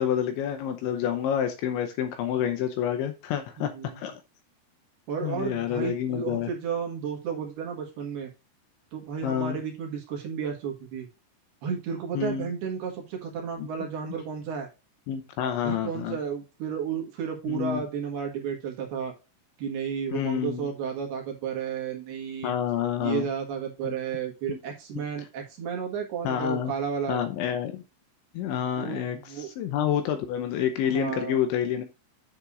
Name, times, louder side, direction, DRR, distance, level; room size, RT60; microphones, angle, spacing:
voice 1, 0.0-4.1 5.2-6.5 9.2-9.6 12.1-12.5 13.6-13.7 15.1-16.2 17.5-17.8 20.1-20.7 22.4-23.3 23.8-24.0 24.5-24.6 26.2-26.7 27.1-27.8 28.3-31.8, left 9 dB, 80° left, 7 dB, 2.9 m, -28 dB
voice 2, 3.6-4.0 5.1-8.3 8.9-11.1 11.6-14.7 15.6-19.1 19.6-22.5 23.0-27.2 28.8-29.5 30.8-31.4, right 7 dB, 65° right, 1 dB, 3.0 m, -32 dB
9.7 x 8.1 x 2.5 m, 0.29 s
omnidirectional pair, 6.0 m